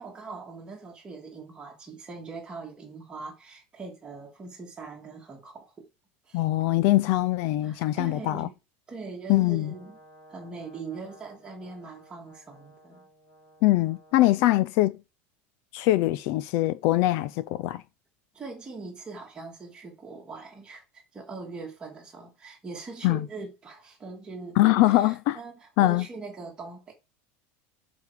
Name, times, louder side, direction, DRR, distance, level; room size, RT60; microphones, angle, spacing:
voice 1, 0.0-5.9 6.3-6.4 7.6-8.5 8.9-10.0 10.3-13.1 18.3-26.9, right 3 dB, 10° right, 2.7 m, -42 dB
voice 2, 6.3-8.5 9.3-9.7 13.6-15.0 15.7-17.8 23.0-23.3 24.6-25.4 25.8-26.1, left 16 dB, 45° left, 0.5 m, -22 dB
Brass instrument, 9.5-14.6, right 1 dB, 25° left, 3.0 m, -55 dB
8.2 x 5.0 x 6.7 m
supercardioid pair, 180°, 7 cm